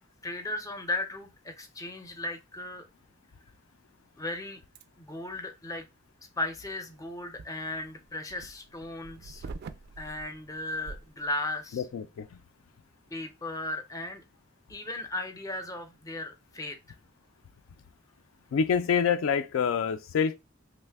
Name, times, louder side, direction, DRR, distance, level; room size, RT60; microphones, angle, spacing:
voice 1, 0.2-2.8 4.2-4.6 5.0-5.8 6.4-9.5 10.0-11.8 13.1-14.2 14.7-16.8, left 2 dB, 15° left, 0.5 m, -36 dB
sound 1, 4.8-4.9 6.4-11.4, right 4 dB, 55° right, 0.3 m, -46 dB
voice 2, 11.7-12.3 18.5-20.4, left 6 dB, 80° left, 0.3 m, -26 dB
3.1 x 2.0 x 3.3 m
head